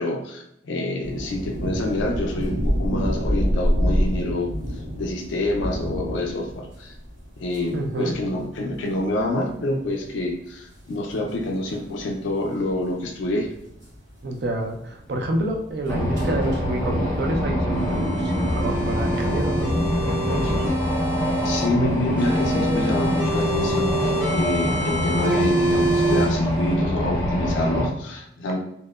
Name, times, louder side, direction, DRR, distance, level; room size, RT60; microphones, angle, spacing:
voice 1, 0.0-4.5 5.0-6.9 7.4-13.5 21.4-28.6, left 1 dB, 80° left, 2 dB, 0.4 m, -27 dB
sound 1, 1.0-17.4, equal, 90° right, 1.0 m, -29 dB
voice 2, 7.7-8.1 14.2-19.7 20.0-20.6 25.3-25.4, right 1 dB, 60° right, 3 dB, 0.4 m, -28 dB
sound 2, 15.9-27.9, equal, 15° left, 1.1 m, -24 dB
sound 3, 17.7-21.7 22.2-26.2, right 2 dB, 5° right, 0.8 m, -27 dB
2.8 x 2.1 x 2.2 m, 0.78 s
head